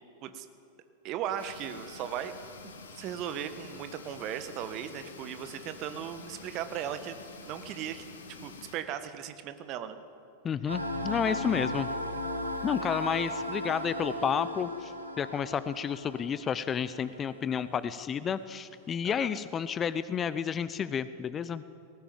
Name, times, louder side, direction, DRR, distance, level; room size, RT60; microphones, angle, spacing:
voice 1, 1.0-2.3 2.6-8.0 8.4-10.0 19.0-19.3, right 10 dB, 40° right, 10 dB, 1.5 m, -37 dB
sound 1, 1.4-8.8, left 4 dB, 65° left, 2.4 m, -48 dB
voice 2, 10.4-11.9 12.6-21.6, left 7 dB, 25° left, 15 dB, 0.7 m, -31 dB
sound 2, 10.7-17.1, left 1 dB, 85° right, 2.2 m, -36 dB
19.5 x 18.0 x 8.7 m, 2.8 s
figure-of-eight pair, 90°, 0 cm